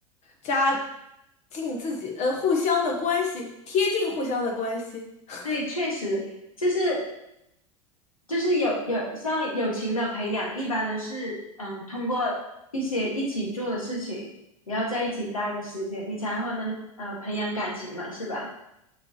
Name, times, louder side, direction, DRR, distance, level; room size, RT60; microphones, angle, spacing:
voice 1, 0.4-0.8 1.5-5.4, left 4 dB, 40° left, 1 dB, 1.3 m, -26 dB
voice 2, 5.4-6.2 6.6-7.0 8.3-12.3 12.7-14.3 14.7-18.5, equal, 85° left, -3 dB, 2.0 m, -28 dB
6.6 x 6.1 x 3.1 m, 0.82 s
figure-of-eight pair, 85°, 17 cm